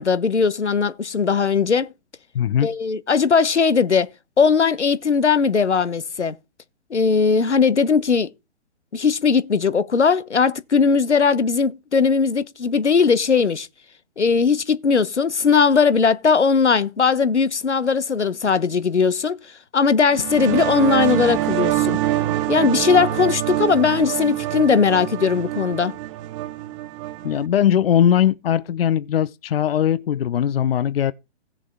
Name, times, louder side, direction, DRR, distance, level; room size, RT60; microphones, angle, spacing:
voice 1, 0.0-1.9 2.6-4.1 4.4-6.3 6.9-8.3 8.9-13.7 14.2-19.4 19.7-22.0 22.5-25.9, left 5 dB, 90° left, 1.1 m, -19 dB
voice 2, 2.3-2.7 27.2-31.1, left 10 dB, 60° left, 0.8 m, -20 dB
sound 1, 20.1-27.5, right 15 dB, 30° right, 1.0 m, -25 dB
16.5 x 7.3 x 3.6 m
hypercardioid pair, 135°, 34 cm